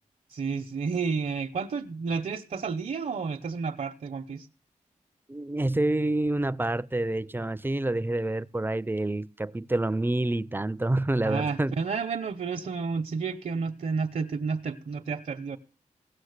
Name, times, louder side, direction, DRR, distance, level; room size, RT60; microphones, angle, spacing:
voice 1, 0.3-4.5 11.3-15.6, right 5 dB, 65° right, 0.8 m, -31 dB
voice 2, 5.3-11.8, right 2 dB, 15° right, 0.5 m, -27 dB
16.5 x 6.3 x 6.5 m
cardioid pair, 55°, 13 cm